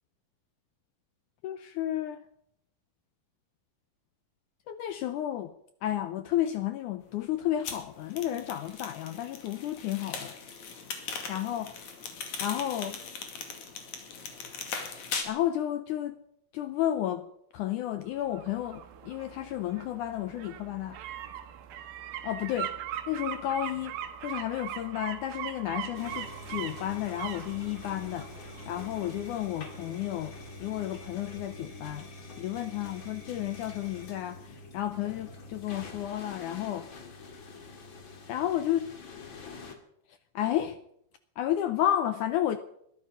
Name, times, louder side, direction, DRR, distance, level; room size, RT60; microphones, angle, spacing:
voice 1, 1.4-2.2 4.7-5.5 5.8-10.3 11.3-11.7 12.4-13.0 15.2-16.2 16.5-17.3 17.5-21.0 22.2-22.7 23.1-23.9 24.2-30.3 30.6-32.0 32.4-36.9 38.3-38.8 40.4-40.8 41.4-42.6, left 12 dB, 75° left, 1.9 m, -32 dB
sound 1, 7.6-15.2, left 5 dB, 55° left, 3.4 m, -39 dB
sound 2, 18.1-30.9 31.3-31.4, right 11 dB, 85° right, 3.1 m, -41 dB
Washing Machine Rinse Empty Spin, 25.9-39.8, left 3 dB, 40° left, 2.3 m, -45 dB
21.0 x 12.0 x 5.7 m
omnidirectional pair, 4.2 m